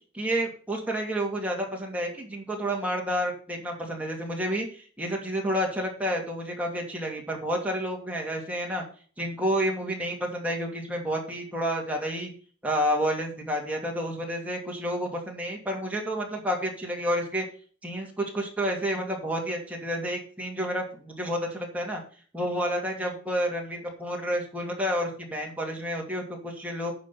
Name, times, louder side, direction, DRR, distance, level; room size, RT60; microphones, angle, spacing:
voice 1, 0.1-8.8 9.2-12.3 12.6-17.4 17.8-22.0 22.3-26.9, equal, 5° right, -1 dB, 2.6 m, -30 dB
9.7 x 5.9 x 5.9 m, 0.42 s
head